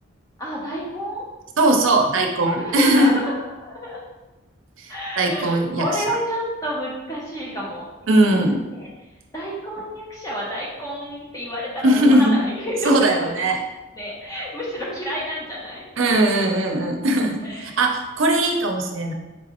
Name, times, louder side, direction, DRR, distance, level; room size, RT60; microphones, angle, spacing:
voice 1, 0.4-1.2 2.5-3.3 3.6-4.0 4.9-8.9 9.3-13.3 13.9-16.5 17.4-17.8, equal, 15° left, -5 dB, 0.7 m, -30 dB
voice 2, 1.6-3.1 5.2-5.9 8.1-8.6 11.8-12.4 12.8-13.6 16.0-19.1, right 1 dB, 80° right, 3 dB, 0.6 m, -19 dB
4.4 x 3.0 x 3.0 m, 1.1 s
head